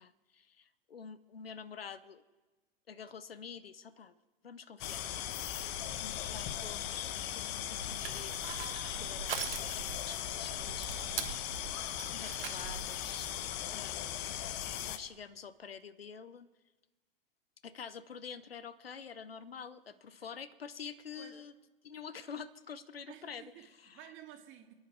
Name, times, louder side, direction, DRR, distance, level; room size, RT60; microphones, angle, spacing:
voice 1, 0.0-2.2 2.9-4.1 4.4-5.1 6.0-8.5 8.9-11.2 12.1-13.3 13.7-14.2 14.8-16.5 17.6-21.5 21.8-24.0, left 6 dB, 85° left, 15 dB, 0.9 m, -47 dB
sound 1, 4.8-15.0, left 11 dB, 50° left, 1.1 m, -38 dB
voice 2, 5.7-6.0 20.2-20.3 21.2-21.4 23.1-24.7, right 11 dB, 45° right, 4 dB, 2.3 m, -54 dB
Crushing, 7.7-13.0, right 8 dB, 75° right, 1.3 m, -42 dB
28.5 x 10.0 x 4.6 m, 1.2 s
figure-of-eight pair, 90°, 29 cm